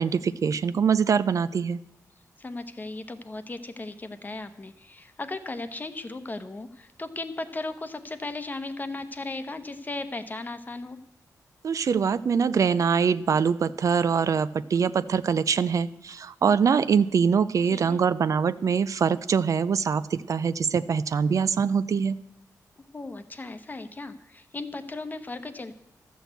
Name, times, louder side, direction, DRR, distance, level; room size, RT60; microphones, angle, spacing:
voice 1, 0.0-1.8 11.6-22.2, right 6 dB, 55° right, 15 dB, 0.4 m, -23 dB
voice 2, 2.4-11.0 17.7-18.0 22.9-25.7, left 2 dB, 25° left, 10 dB, 0.9 m, -36 dB
12.5 x 6.2 x 8.1 m, 0.85 s
wide cardioid pair, 105°, 7 cm